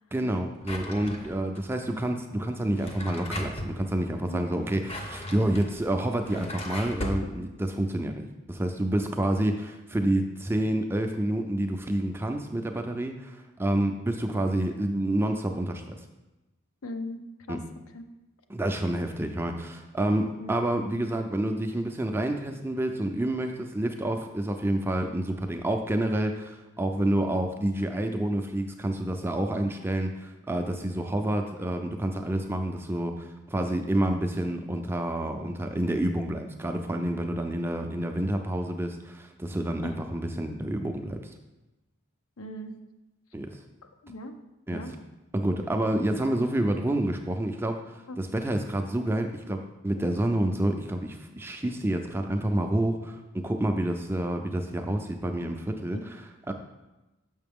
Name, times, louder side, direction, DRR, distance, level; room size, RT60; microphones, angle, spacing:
voice 1, 0.1-16.1 17.5-17.6 18.5-41.3 43.3-43.6 44.7-44.8 45.3-56.0 56.5-56.6, right 1 dB, 10° right, 4 dB, 0.4 m, -28 dB
Drawer open or close, 0.6-1.6 2.6-3.8 4.6-7.3, left 1 dB, 30° left, 0.6 m, -36 dB
voice 2, 16.8-17.6 17.9-18.1 20.4-20.5 39.8-40.0 42.4-42.8 43.8-44.3 44.7-45.0 48.1-48.2 55.9-56.1, left 1 dB, 80° left, 7 dB, 0.6 m, -39 dB
6.8 x 5.7 x 3.6 m, 1.0 s
head